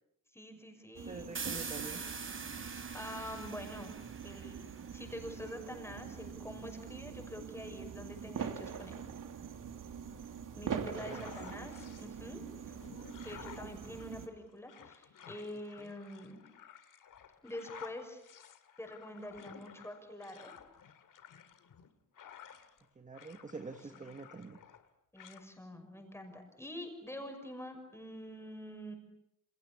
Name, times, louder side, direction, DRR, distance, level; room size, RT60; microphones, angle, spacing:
voice 1, 0.3-1.3 2.5-3.9 4.2-9.0 10.5-12.4 12.7-12.8 13.2-16.4 17.4-18.2 18.8-20.5 23.9-24.0 25.1-28.9, left 1 dB, 10° left, 4 dB, 6.0 m, -46 dB
sound 1, 0.9-14.3, right 7 dB, 85° right, 2.5 m, -44 dB
voice 2, 1.1-2.0 10.8-11.3 15.8-15.9 22.9-24.6, right 3 dB, 25° right, 5 dB, 1.4 m, -46 dB
sound 2, 1.3-5.0, right 5 dB, 40° right, 3.9 m, -43 dB
sound 3, 10.8-12.1 12.6-22.8 23.1-24.9 25.2-25.4, left 9 dB, 85° left, 2.2 m, -54 dB
29.0 x 28.5 x 7.1 m, 0.81 s
wide cardioid pair, 165°, 31 cm